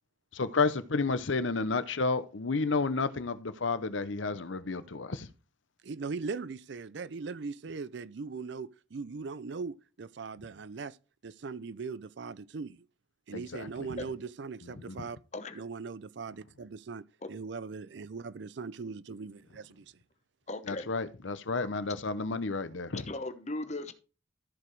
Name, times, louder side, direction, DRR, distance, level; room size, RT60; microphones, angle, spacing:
voice 1, 0.3-5.3 13.3-13.9 14.6-15.0 20.7-23.0, left 3 dB, 75° left, 0.8 m, -31 dB
voice 2, 5.8-11.0 11.2-12.9 13.3-15.2 15.5-19.9, right 4 dB, 60° right, 0.5 m, -40 dB
voice 3, 20.5-20.9 22.9-23.9, left 2 dB, 35° left, 1.0 m, -37 dB
14.0 x 4.9 x 4.6 m
head